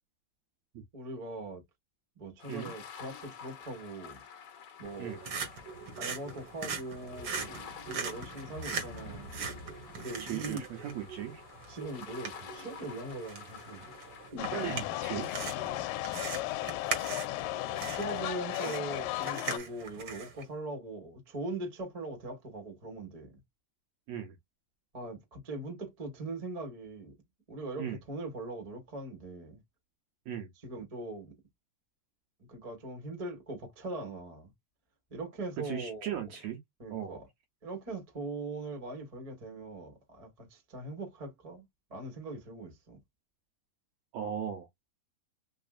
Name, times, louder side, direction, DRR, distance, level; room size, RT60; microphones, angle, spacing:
voice 1, 0.9-1.6 2.2-4.2 4.8-5.2 6.0-9.3 10.0-10.6 11.7-13.8 14.3-14.5 17.8-23.3 24.9-27.1 27.5-29.6 30.6-31.3 32.5-34.5 35.1-36.2 36.8-37.3 37.6-41.6 41.9-43.0, right 2 dB, 35° right, 0.5 m, -41 dB
sound 1, 2.4-14.3, left 7 dB, 60° left, 1.5 m, -49 dB
sound 2, 4.8-20.4, right 5 dB, 55° right, 1.3 m, -41 dB
voice 2, 10.2-11.4 14.5-15.3 24.1-24.4 27.8-28.0 30.3-30.5 35.6-36.6 36.9-37.2 44.1-44.7, right 9 dB, 75° right, 1.6 m, -37 dB
sound 3, 14.4-19.6, left 17 dB, 80° left, 2.1 m, -35 dB
5.2 x 2.4 x 2.4 m
omnidirectional pair, 3.9 m